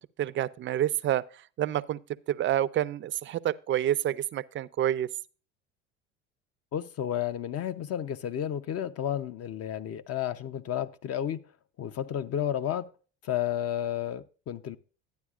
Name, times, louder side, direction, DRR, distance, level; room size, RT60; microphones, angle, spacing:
voice 1, 0.2-1.2 1.6-2.0 2.3-5.1, right 12 dB, 35° right, 0.5 m, -28 dB
voice 2, 6.7-11.4 11.8-12.9 13.2-14.8, left 10 dB, 45° left, 0.7 m, -32 dB
11.5 x 9.3 x 2.4 m
hypercardioid pair, 75°, 35 cm